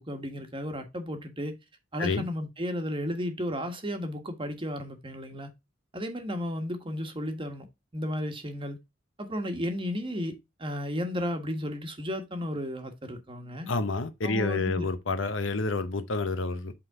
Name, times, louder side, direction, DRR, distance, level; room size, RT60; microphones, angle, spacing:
voice 1, 0.0-1.6 1.9-5.5 5.9-7.7 7.9-8.8 9.2-13.7 14.2-14.9, equal, 25° right, 1.5 m, -33 dB
voice 2, 13.7-16.7, left 3 dB, 75° left, 0.9 m, -29 dB
8.4 x 3.9 x 3.6 m
head